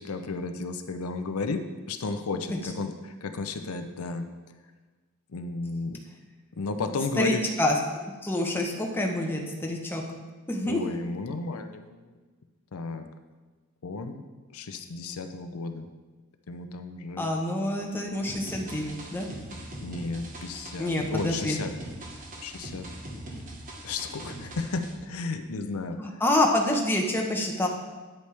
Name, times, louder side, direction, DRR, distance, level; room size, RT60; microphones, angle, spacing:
voice 1, 0.0-1.6 1.9-4.6 5.3-6.0 6.5-7.4 10.7-12.2 12.7-13.1 13.8-14.2 14.5-15.9 16.5-17.3 19.8-21.7 22.4-22.9 23.8-26.2, left 3 dB, 85° left, 7 dB, 0.6 m, -33 dB
voice 2, 7.2-7.8 8.2-10.0 10.5-10.9 17.2-19.3 20.8-21.6 26.0-27.7, left 1 dB, 10° left, 0 dB, 0.9 m, -27 dB
sound 1, 18.3-24.9, right 1 dB, 35° right, 1.3 m, -41 dB
9.2 x 8.3 x 3.3 m, 1.3 s
head